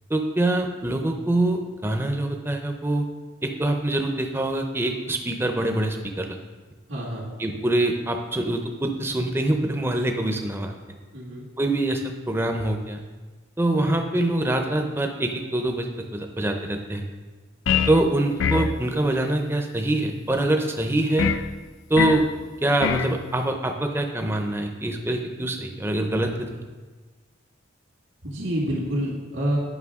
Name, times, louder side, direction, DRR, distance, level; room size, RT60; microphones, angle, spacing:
voice 1, 0.1-3.1 3.4-6.4 7.4-10.7 11.6-13.0 13.6-17.1 17.9-21.3 21.9-22.3 22.6-26.5, right 1 dB, 10° right, 4 dB, 0.5 m, -24 dB
voice 2, 6.9-7.3 11.1-11.5 28.2-29.6, equal, 80° right, -7 dB, 2.0 m, -27 dB
sound 1, 17.7-18.0 18.4-18.8 21.2-21.5 22.0-22.3 22.8-23.1, left 7 dB, 75° left, 0.3 m, -23 dB
9.5 x 5.7 x 3.6 m, 1.3 s
head